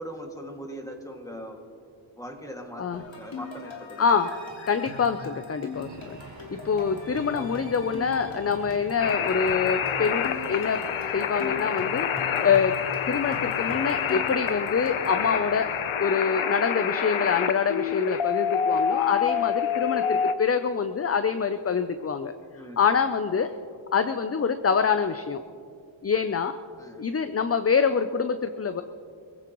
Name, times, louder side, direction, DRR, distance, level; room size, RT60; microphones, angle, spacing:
voice 1, 0.0-1.6 2.2-4.1 19.2-19.7 20.1-20.3 22.6-23.0 26.1-26.3 26.8-27.0, equal, 5° left, 1 dB, 2.1 m, -41 dB
sound 1, 2.9-15.2, left 3 dB, 75° left, 3.3 m, -41 dB
voice 2, 4.0-6.2 6.5-10.8 11.1-12.1 12.4-12.7 13.1-15.7 16.0-22.3 22.8-23.5 23.9-25.4 26.0-26.5 27.0-28.8, left 6 dB, 30° left, 9 dB, 0.5 m, -25 dB
sound 2, 5.7-16.0, right 3 dB, 55° right, 1.4 m, -47 dB
sound 3, 9.0-20.3, left 8 dB, 90° left, 0.8 m, -27 dB
25.5 x 16.0 x 3.1 m, 2.4 s
wide cardioid pair, 90°, 47 cm